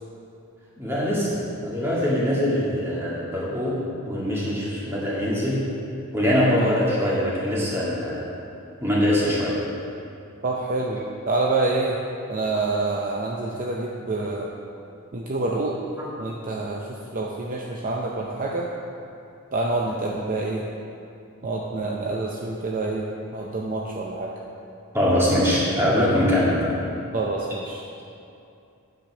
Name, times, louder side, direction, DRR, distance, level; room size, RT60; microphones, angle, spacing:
voice 1, 0.8-3.8 4.0-5.6 6.1-8.3 8.8-9.6 16.0-16.1 24.9-26.8, left 1 dB, 10° right, -7 dB, 1.9 m, -23 dB
voice 2, 10.4-12.0 12.3-14.5 15.1-15.7 16.2-18.7 19.5-20.6 21.4-23.0 23.3-24.3 27.1-27.8, right 2 dB, 40° right, -2 dB, 0.6 m, -27 dB
9.0 x 5.1 x 6.0 m, 2.6 s
head